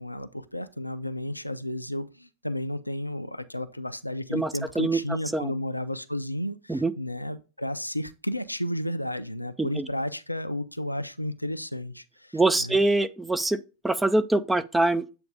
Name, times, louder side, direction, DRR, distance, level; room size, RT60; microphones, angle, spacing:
voice 1, 0.0-12.8, left 1 dB, 85° left, 0.4 m, -33 dB
voice 2, 4.3-5.0 5.3-5.5 6.7-6.9 9.6-9.9 12.3-13.6 13.8-15.1, right 2 dB, 5° right, 0.4 m, -24 dB
7.7 x 2.6 x 4.9 m
figure-of-eight pair, 90°, 0 cm